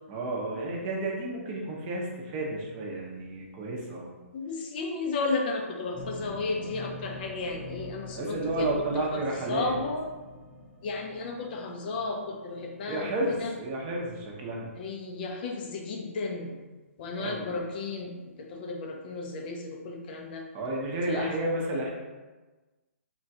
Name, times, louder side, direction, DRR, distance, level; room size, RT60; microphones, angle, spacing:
voice 1, 0.1-4.1 8.2-9.8 12.9-14.7 17.2-17.6 20.5-21.9, right 1 dB, 30° right, -2 dB, 0.6 m, -31 dB
voice 2, 4.3-8.7 9.1-9.2 9.5-10.0 10.8-13.5 14.8-16.5 17.0-20.5 21.1-21.3, left 3 dB, 40° left, 1 dB, 0.4 m, -33 dB
sound 1, 5.9-14.9, left 1 dB, 5° left, 0.9 m, -46 dB
3.7 x 2.2 x 2.7 m, 1.2 s
hypercardioid pair, 140°, 8 cm